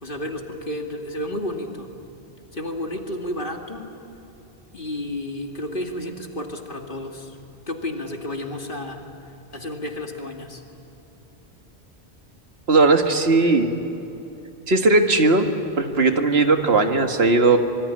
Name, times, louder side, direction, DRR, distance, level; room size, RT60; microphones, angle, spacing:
voice 1, 0.0-1.9 2.5-3.8 4.7-7.4 7.7-9.0 9.5-10.6, left 1 dB, 55° left, 3 dB, 2.5 m, -31 dB
voice 2, 12.7-13.7 14.7-15.5 15.8-17.6, right 3 dB, 70° right, 5 dB, 2.0 m, -17 dB
25.0 x 22.5 x 9.9 m, 3.0 s
omnidirectional pair, 1.1 m